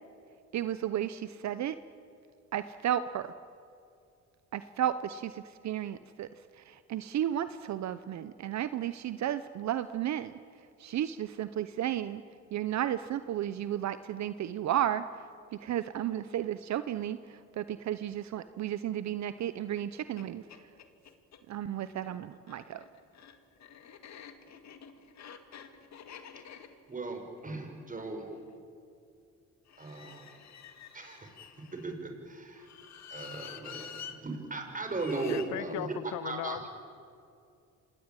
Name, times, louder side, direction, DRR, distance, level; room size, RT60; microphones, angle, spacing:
voice 1, 0.5-1.8 2.5-3.3 4.5-6.3 6.5-10.3 10.8-12.2 12.5-15.0 15.5-20.6 21.5-22.8, right 11 dB, 65° right, 0.8 m, -33 dB
sound 1, 19.7-19.8 20.2-20.3 20.5-21.4 22.3-28.5 29.7-31.9 32.6-34.2 34.9-35.5, left 8 dB, 65° left, 2.0 m, -49 dB
voice 2, 26.9-28.3 29.8-30.4 30.9-32.7 33.1-36.6, right 3 dB, 25° right, 5.4 m, -37 dB
voice 3, 35.3-36.7, left 16 dB, 80° left, 0.5 m, -37 dB
26.5 x 19.5 x 9.1 m
cardioid pair, 90°, 30 cm